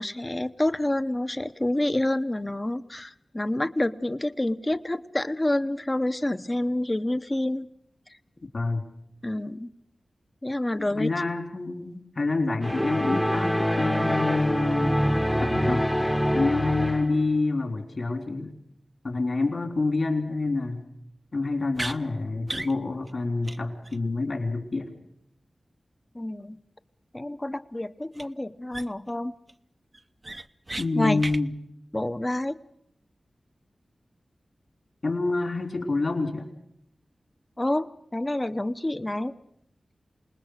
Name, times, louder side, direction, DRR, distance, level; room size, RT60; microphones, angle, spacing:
voice 1, 0.0-7.7 9.2-9.7 10.4-11.1 26.1-26.6 27.1-29.3 30.9-31.2 31.9-32.6 37.6-39.3, left 1 dB, 25° left, 12 dB, 0.9 m, -28 dB
voice 2, 10.9-15.0 15.4-15.9 16.3-18.5 19.0-20.8 21.3-24.9 30.8-31.5 35.0-36.5, left 3 dB, 60° left, 5 dB, 3.7 m, -27 dB
sound 1, 12.6-17.3, equal, 5° left, 1.0 m, -25 dB
sound 2, 21.7-22.0 22.5-22.7 23.1-23.2 23.4-23.6 23.8-24.0 28.1-28.2 28.7-29.1 29.5-29.6 29.9-30.9 31.2-31.4, right 2 dB, 35° right, 0.8 m, -34 dB
27.0 x 19.5 x 6.5 m, 0.73 s
cardioid pair, 50°, 0 cm